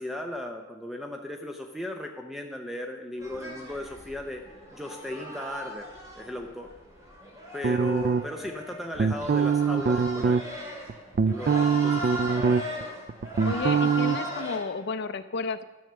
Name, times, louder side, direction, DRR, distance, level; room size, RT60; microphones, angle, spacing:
voice 1, 0.0-4.4 4.7-5.9 6.1-6.7 7.5-10.4 11.2-12.6, left 1 dB, ahead, 3 dB, 0.6 m, -36 dB
sound 1, 3.2-14.6, left 1 dB, 15° right, 2.8 m, -38 dB
sound 2, 7.6-8.5 9.0-10.4 10.9-12.8 13.1-14.2, right 6 dB, 45° right, 0.3 m, -23 dB
voice 2, 13.4-15.6, left 4 dB, 60° left, 10 dB, 0.5 m, -32 dB
12.5 x 6.4 x 6.8 m, 1.2 s
head